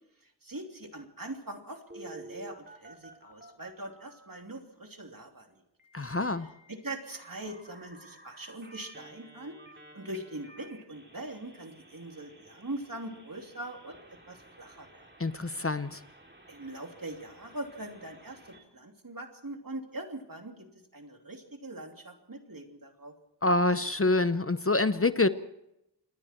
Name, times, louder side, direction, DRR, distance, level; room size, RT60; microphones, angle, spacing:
voice 1, 0.4-5.6 6.7-9.6 9.9-15.1 16.5-20.7 20.9-23.1, right 1 dB, 55° right, 3 dB, 3.2 m, -42 dB
Telephone, 1.9-4.4 5.8-18.6, right 2 dB, 25° right, 3.4 m, -53 dB
voice 2, 5.9-6.5 15.2-16.0 23.4-25.3, left 2 dB, 35° left, 13 dB, 0.8 m, -26 dB
28.0 x 20.5 x 4.5 m, 0.86 s
wide cardioid pair, 40°, 41 cm